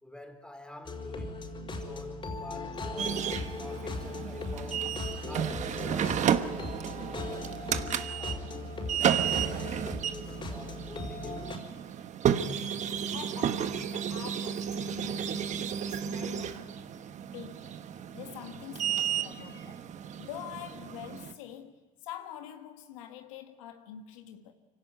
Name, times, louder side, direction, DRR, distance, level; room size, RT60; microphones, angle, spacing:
voice 1, 0.0-1.5 1.8-5.0 5.3-6.3 6.8-7.5 8.2-8.6 9.0-11.8, left 1 dB, 5° left, 3.7 m, -48 dB
sound 1, 0.8-11.6, left 2 dB, 30° left, 5.1 m, -38 dB
sound 2, 3.0-21.3, right 9 dB, 45° right, 1.2 m, -33 dB
voice 2, 13.1-16.8 17.3-17.8 18.1-19.9 20.2-24.5, left 10 dB, 90° left, 1.7 m, -45 dB
25.0 x 17.5 x 9.3 m
supercardioid pair, 80°, 16 cm